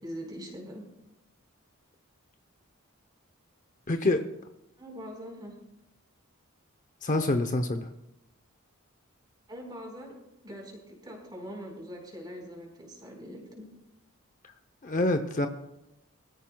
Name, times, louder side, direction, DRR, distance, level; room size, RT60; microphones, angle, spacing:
voice 1, 0.0-0.8 4.8-5.5 9.5-10.1 10.4-13.7, equal, 20° right, 0 dB, 4.3 m, -42 dB
voice 2, 3.9-4.2 7.0-7.9 14.8-15.5, left 2 dB, 35° left, 7 dB, 0.7 m, -26 dB
23.5 x 14.0 x 2.3 m, 0.89 s
head